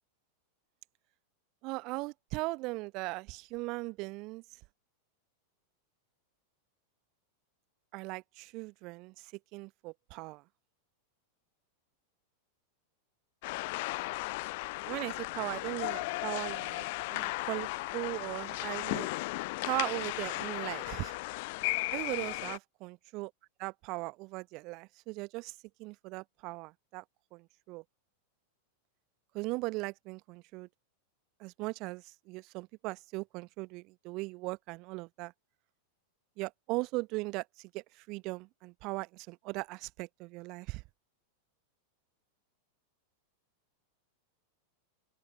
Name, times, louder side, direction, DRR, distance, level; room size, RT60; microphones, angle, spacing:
voice 1, 1.6-4.4 7.9-10.4 14.8-16.8 17.1-17.7 17.9-19.1 19.6-21.1 21.9-23.3 23.6-27.0 27.3-27.8 29.3-30.7 31.4-35.3 36.4-40.8, right 24 dB, 40° right, 0.9 m, -38 dB
sound 1, 13.4-22.6, left 24 dB, 50° left, 0.4 m, -36 dB
open air
figure-of-eight pair, 90°, 0 cm